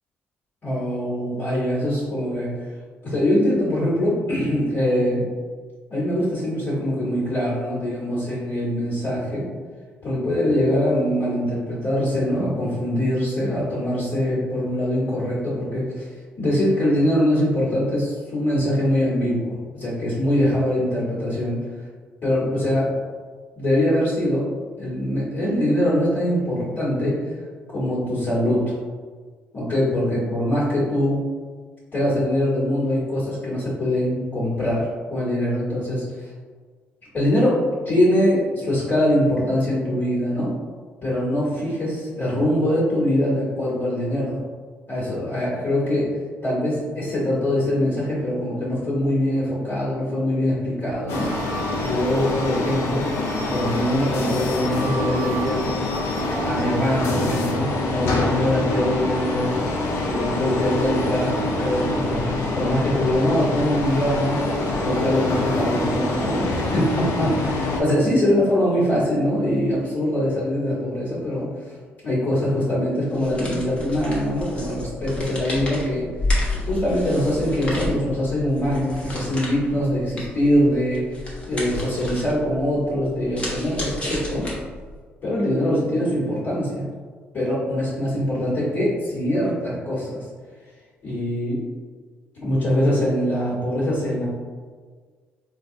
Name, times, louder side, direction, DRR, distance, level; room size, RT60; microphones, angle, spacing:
voice 1, 0.6-2.7 3.0-5.2 5.9-9.5 10.0-21.6 22.2-22.9 23.5-24.5 24.8-27.2 27.7-28.7 29.5-31.2 31.9-36.3 37.1-40.5 41.0-44.4 44.9-46.1 46.4-51.3 51.8-53.1 53.5-55.7 56.2-59.5 60.0-64.4 64.8-71.5 72.0-76.1 76.6-81.2 81.5-84.5 85.2-86.9 87.3-90.3 91.0-91.6 92.4-94.2, left 1 dB, 50° left, -9 dB, 1.5 m, -23 dB
sound 1, 51.1-67.8, left 2 dB, 80° left, 0.5 m, -25 dB
sound 2, 73.1-85.0, left 1 dB, 25° left, 1.0 m, -31 dB
3.9 x 2.4 x 2.7 m, 1.5 s
cardioid pair, 105°, 4 cm